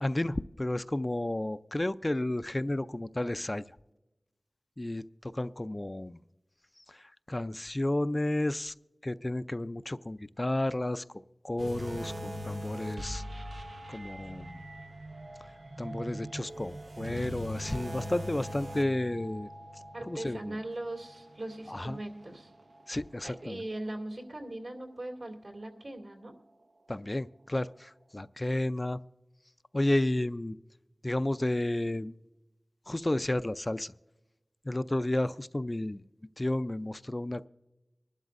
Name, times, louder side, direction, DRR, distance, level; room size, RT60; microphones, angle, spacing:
voice 1, 0.0-3.6 4.8-6.2 6.8-8.7 9.0-11.0 11.4-13.2 13.9-14.6 15.8-19.5 20.1-20.6 21.7-22.0 22.9-23.7 26.9-29.0 29.7-30.6 31.0-32.1 32.9-33.9 34.6-36.0 36.4-37.5, left 1 dB, 30° left, 13 dB, 0.3 m, -32 dB
sound 1, 11.6-23.0 23.4-23.6 24.2-24.3, equal, 90° right, 0.9 m, -42 dB
voice 2, 19.9-22.5 23.2-26.3, right 1 dB, 75° right, 0 dB, 2.4 m, -40 dB
24.0 x 12.0 x 2.5 m, 0.98 s
wide cardioid pair, 55°, 0 cm